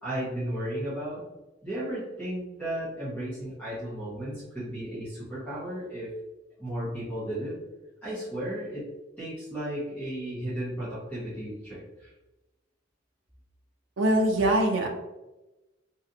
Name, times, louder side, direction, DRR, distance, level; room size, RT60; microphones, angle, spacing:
voice 1, 0.0-1.2 1.6-6.1 6.6-7.5 8.0-8.9 9.2-12.1, right 1 dB, 10° left, -11 dB, 1.2 m, -34 dB
voice 2, 14.0-14.9, right 1 dB, 80° right, 2 dB, 0.5 m, -23 dB
3.2 x 2.7 x 2.6 m, 1.0 s
head